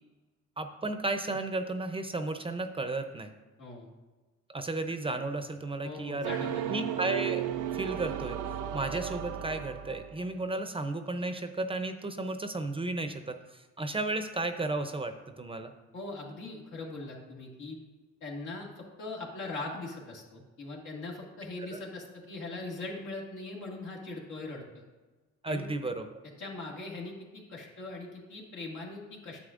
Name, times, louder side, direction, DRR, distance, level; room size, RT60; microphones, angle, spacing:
voice 1, 0.6-3.3 4.5-6.3 6.7-7.5 7.7-8.4 8.7-15.7 21.6-21.7 25.4-26.2, right 2 dB, 20° right, 8 dB, 0.5 m, -33 dB
voice 2, 3.6-3.9 5.8-6.7 15.9-17.8 18.2-24.8 25.5-25.7 26.4-29.4, left 2 dB, 80° left, -2 dB, 1.9 m, -41 dB
sound 1, 6.2-10.4, right 10 dB, 90° right, 0.6 m, -34 dB
9.7 x 7.5 x 2.5 m, 1.2 s
cardioid pair, 90°, 30 cm